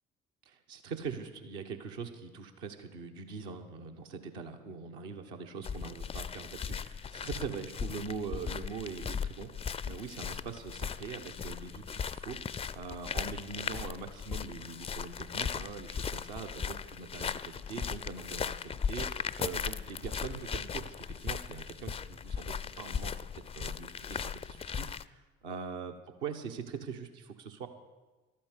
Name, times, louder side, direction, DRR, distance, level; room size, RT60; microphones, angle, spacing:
voice 1, 0.5-25.9 26.2-27.7, right 5 dB, 70° right, 5 dB, 1.2 m, -42 dB
sound 1, 5.6-25.0, left 6 dB, 15° left, 0.4 m, -38 dB
12.5 x 9.1 x 8.1 m, 1.2 s
figure-of-eight pair, 50°, 35 cm